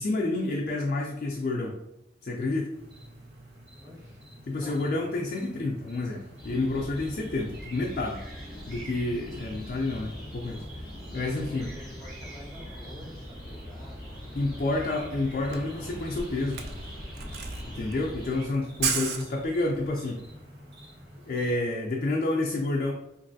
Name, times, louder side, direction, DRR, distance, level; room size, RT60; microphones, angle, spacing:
voice 1, 0.0-1.8 2.2-2.7 4.5-8.2 8.7-11.7 14.3-16.6 17.7-20.2 21.3-22.9, left 2 dB, 45° left, 0 dB, 0.3 m, -29 dB
sound 1, 2.7-21.5, equal, 80° right, 0.9 m, -49 dB
voice 2, 3.7-4.2 4.6-4.8 11.2-14.7, left 1 dB, 15° right, -5 dB, 0.8 m, -48 dB
sound 2, 6.4-18.5, equal, ahead, 1.2 m, -42 dB
Camera, 15.1-15.2 15.4-19.9, right 6 dB, 60° right, 0.3 m, -34 dB
3.1 x 2.5 x 2.6 m, 0.82 s
head